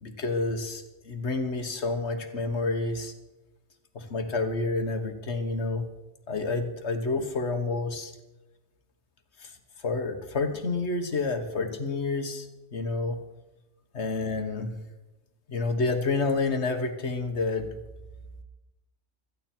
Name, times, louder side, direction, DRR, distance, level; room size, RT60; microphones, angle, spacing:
voice 1, 0.0-3.1 3.9-5.9 6.3-8.1 9.4-9.5 9.8-13.2 13.9-14.7 15.5-17.7, left 3 dB, 65° left, 7 dB, 1.7 m, -29 dB
16.5 x 14.0 x 4.5 m, 1.0 s
omnidirectional pair, 1.2 m